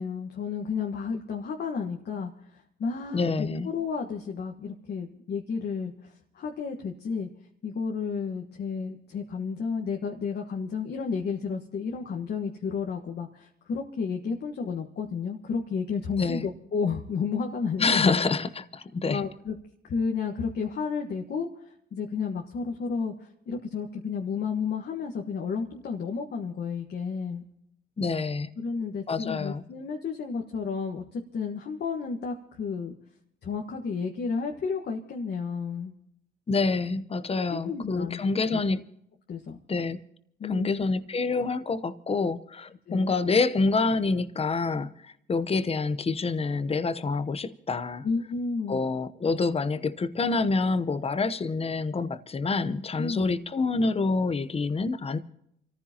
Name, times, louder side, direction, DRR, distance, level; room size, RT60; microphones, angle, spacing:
voice 1, 0.0-7.3 7.6-18.1 19.1-19.5 19.8-27.5 28.6-32.9 33.4-35.9 37.4-38.6 39.3-39.6 40.4-40.9 42.9-43.2 48.0-48.8 53.0-53.4, left 5 dB, 55° left, 1.5 m, -32 dB
voice 2, 3.1-3.7 16.2-16.5 17.8-19.2 28.0-28.5 29.1-29.6 36.5-38.8 39.7-40.0 40.4-48.1 48.7-55.2, left 3 dB, 30° left, 0.9 m, -27 dB
28.5 x 14.5 x 2.9 m
cardioid pair, 90°, 20 cm